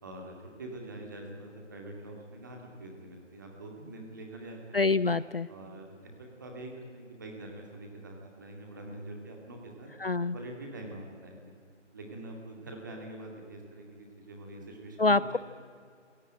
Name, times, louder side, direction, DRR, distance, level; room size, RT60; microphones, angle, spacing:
voice 1, 0.0-4.8 5.5-9.9 10.3-11.5 11.9-15.4, right 1 dB, 15° right, 1 dB, 2.3 m, -45 dB
voice 2, 4.7-5.5 10.0-10.3 15.0-15.4, left 3 dB, 50° left, 17 dB, 0.6 m, -25 dB
27.0 x 17.5 x 8.9 m, 2.2 s
figure-of-eight pair, 170°, 36 cm